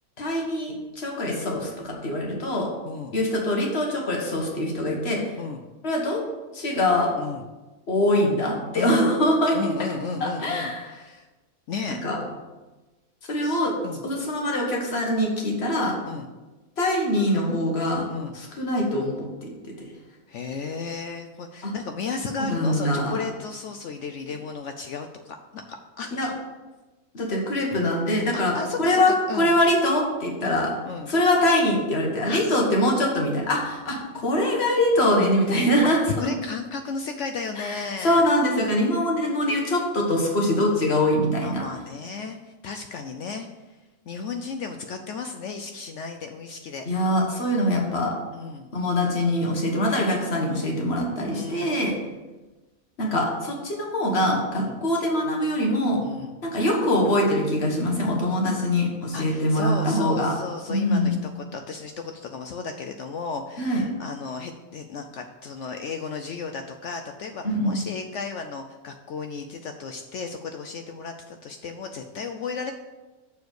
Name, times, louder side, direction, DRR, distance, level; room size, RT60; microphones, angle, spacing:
voice 1, 0.2-2.7 3.1-5.2 5.8-6.2 6.5-7.1 7.9-9.7 10.2-10.8 12.0-12.2 13.3-13.7 14.0-15.9 16.8-18.1 18.3-19.5 21.6-21.7 22.3-23.2 26.1-26.3 27.1-30.7 31.1-36.1 37.6-41.6 46.9-48.1 48.7-51.9 53.0-56.0 56.4-60.3 60.7-61.2 63.6-63.8 67.4-67.8, left 1 dB, 45° left, 0 dB, 1.7 m, -23 dB
voice 2, 2.8-3.1 5.4-5.6 7.2-7.4 8.7-8.9 9.5-11.3 11.7-12.0 13.4-14.0 16.1-16.3 18.1-18.3 20.3-26.3 27.7-27.8 28.5-29.0 29.3-29.5 30.4-31.1 32.3-32.6 36.1-38.3 41.4-43.8 44.1-46.8 48.3-48.7 51.3-51.8 54.5-54.8 56.0-56.3 59.1-72.7, left 5 dB, 65° left, 6 dB, 0.8 m, -34 dB
6.9 x 4.3 x 6.4 m, 1.2 s
omnidirectional pair, 1.5 m